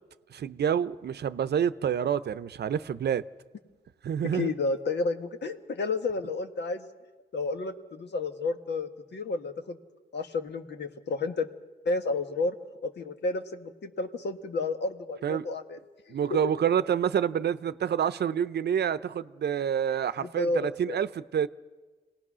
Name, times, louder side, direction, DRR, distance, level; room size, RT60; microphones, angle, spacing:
voice 1, 0.3-3.2 4.0-4.5 15.2-15.5 16.1-21.5, right 8 dB, 65° right, 0.7 m, -28 dB
voice 2, 4.3-6.9 7.3-9.8 10.1-11.5 11.8-12.5 12.8-15.8 16.1-16.2 20.2-21.0, left 3 dB, 70° left, 1.5 m, -31 dB
27.5 x 18.5 x 6.2 m
wide cardioid pair, 115°, 18 cm